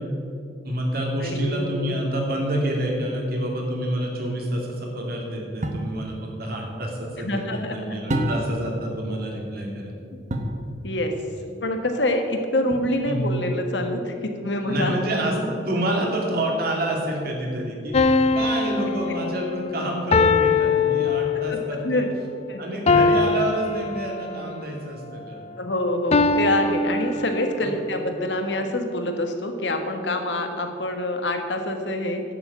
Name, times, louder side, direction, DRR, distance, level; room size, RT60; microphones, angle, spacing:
voice 1, 0.6-9.9 13.1-13.3 14.6-22.0 22.6-25.4 27.6-27.8, right 1 dB, 60° right, 0 dB, 2.6 m, -28 dB
voice 2, 1.2-2.0 7.2-8.0 10.8-11.1 11.6-15.0 18.8-18.9 21.5-21.6 21.8-22.1 22.5-22.8 25.6-32.2, left 1 dB, 85° left, 5 dB, 1.5 m, -26 dB
sound 1, 5.6-5.9 8.1-8.7 10.3-10.6 12.7-13.2, right 1 dB, 45° right, 1.1 m, -27 dB
sound 2, 17.9-21.7 22.9-24.4 26.1-27.7, left 4 dB, 35° left, 0.5 m, -22 dB
11.0 x 7.1 x 8.3 m, 2.4 s
head